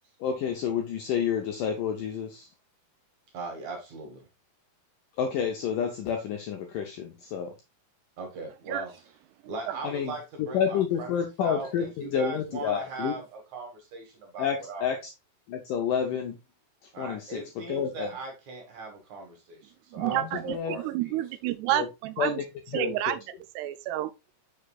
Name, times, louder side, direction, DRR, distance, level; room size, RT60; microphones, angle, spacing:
voice 1, 0.2-2.5 5.2-7.5 9.8-10.1 10.4-13.2 14.4-15.0 15.5-16.4 17.0-17.4 17.7-18.1 20.0-20.8 21.7-21.9 22.2-22.4 22.7-23.2, left 7 dB, 80° left, 1.9 m, -29 dB
voice 2, 3.3-4.3 8.2-9.0 9.4-14.9 16.9-20.2 20.6-21.2, right 3 dB, 55° right, 2.5 m, -39 dB
voice 3, 20.0-22.4 22.7-23.2 23.6-24.1, right 14 dB, 85° right, 2.6 m, -29 dB
6.6 x 6.4 x 2.4 m
omnidirectional pair, 4.7 m